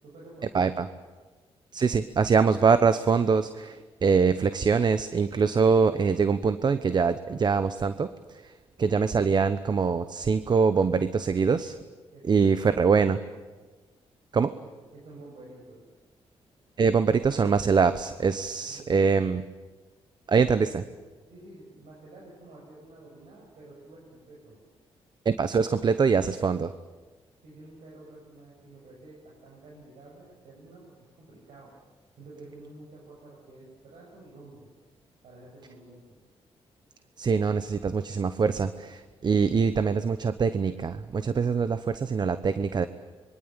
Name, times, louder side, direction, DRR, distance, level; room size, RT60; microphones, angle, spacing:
voice 1, 0.0-0.7 12.1-12.6 14.6-15.8 18.5-19.1 21.3-24.5 27.4-31.7 32.1-34.7 35.2-36.2, right 2 dB, 80° right, -4 dB, 7.5 m, -50 dB
voice 2, 0.5-0.9 1.7-8.5 8.8-11.7 12.3-13.2 14.3-14.5 16.8-19.4 20.3-20.8 25.2-26.7 37.2-42.9, right 5 dB, 45° right, 12 dB, 1.0 m, -24 dB
26.5 x 23.0 x 8.9 m, 1.3 s
cardioid pair, 100°, 11 cm